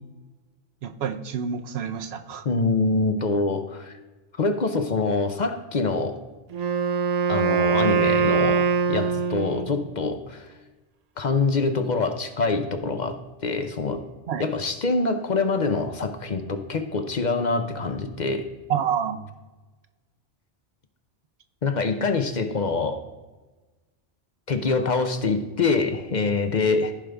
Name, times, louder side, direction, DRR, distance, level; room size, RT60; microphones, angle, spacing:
voice 1, 0.8-2.4 14.3-14.5 18.7-19.3, right 8 dB, 75° right, 8 dB, 0.9 m, -28 dB
voice 2, 2.4-3.9 4.4-6.2 7.3-10.5 11.2-14.1 14.4-18.5 21.6-23.0 24.5-26.9, left 3 dB, 50° left, 8 dB, 0.7 m, -25 dB
Wind instrument woodwind instrument, 6.5-9.8, right 5 dB, 45° right, 0.6 m, -23 dB
15.0 x 5.1 x 3.4 m, 1.2 s
omnidirectional pair, 1.1 m